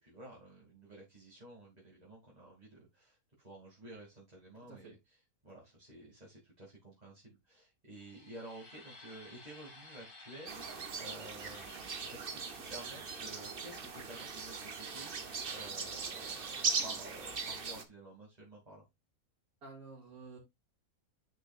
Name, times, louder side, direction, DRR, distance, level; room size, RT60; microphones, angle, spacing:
voice 1, 0.0-5.2 5.4-18.8, right 1 dB, 25° right, 2.7 m, -52 dB
voice 2, 4.7-5.0 19.6-20.4, right 4 dB, 70° right, 2.8 m, -50 dB
sound 1, 7.9-17.7, left 2 dB, 75° left, 3.7 m, -57 dB
sound 2, 10.5-17.8, right 5 dB, 40° right, 1.0 m, -39 dB
8.8 x 6.3 x 2.5 m
omnidirectional pair, 1.6 m